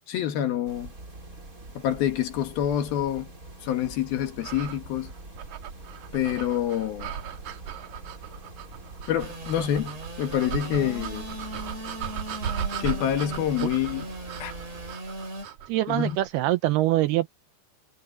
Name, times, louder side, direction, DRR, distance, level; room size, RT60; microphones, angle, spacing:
voice 1, 0.1-0.9 1.8-3.3 3.6-5.1 6.1-7.1 9.1-11.3 12.8-14.1 14.4-14.5 15.9-16.2, left 10 dB, 65° left, 3.2 m, -27 dB
sound 1, 0.7-15.0, right 2 dB, 20° right, 3.7 m, -45 dB
sound 2, 4.4-16.3, right 9 dB, 55° right, 2.4 m, -37 dB
Engine / Sawing, 9.2-15.5, equal, 35° right, 8.0 m, -38 dB
voice 2, 15.7-17.3, right 16 dB, 80° right, 2.4 m, -24 dB
omnidirectional pair, 5.0 m